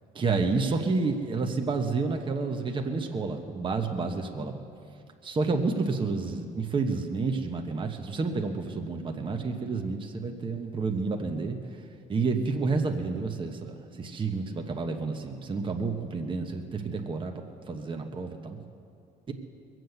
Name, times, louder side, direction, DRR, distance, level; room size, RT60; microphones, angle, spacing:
voice 1, 0.1-4.6 5.2-11.6 12.1-18.6 19.3-19.4, right 4 dB, 30° right, 3 dB, 1.2 m, -30 dB
22.0 x 7.8 x 8.0 m, 2.5 s
cardioid pair, 110°, 17 cm